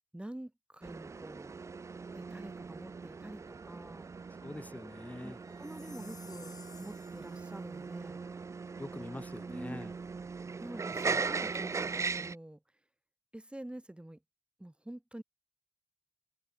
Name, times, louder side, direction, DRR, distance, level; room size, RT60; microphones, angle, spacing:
voice 1, 0.1-1.6 2.1-4.1 5.2-8.2 9.5-9.8 10.6-12.6 13.3-14.2 14.6-15.2, right 1 dB, 15° right, 2.0 m, -47 dB
sound 1, 0.8-12.3, right 4 dB, 50° right, 0.3 m, -39 dB
Wind instrument woodwind instrument, 3.4-9.5, right 4 dB, 75° right, 5.2 m, -60 dB
voice 2, 4.4-5.4 8.8-9.9, left 1 dB, 25° left, 2.4 m, -44 dB
Chime, 5.6-7.6, left 5 dB, 80° left, 0.9 m, -55 dB
cardioid pair, 45°, 6 cm